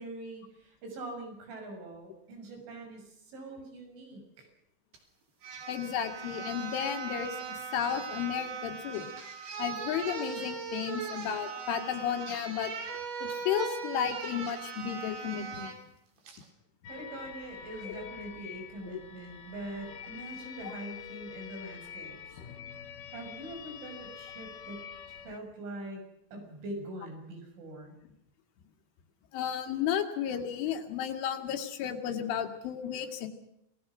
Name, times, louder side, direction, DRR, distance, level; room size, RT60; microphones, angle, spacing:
voice 1, 0.0-4.5 16.9-22.4 23.1-24.9 25.3-26.0 26.3-28.0, right 1 dB, 80° right, 3 dB, 8.8 m, -43 dB
sound 1, 4.9-5.0 5.4-15.8 16.3-16.4, right 6 dB, 60° right, 5.3 m, -39 dB
voice 2, 5.7-9.1 9.6-12.7 13.2-15.7 17.8-17.9 18.9-19.0 20.6-20.7 29.3-33.3, left 9 dB, 80° left, 6 dB, 4.5 m, -33 dB
sound 2, 16.8-25.4, left 8 dB, 55° left, 2.8 m, -46 dB
28.0 x 19.0 x 6.2 m, 0.80 s
omnidirectional pair, 5.5 m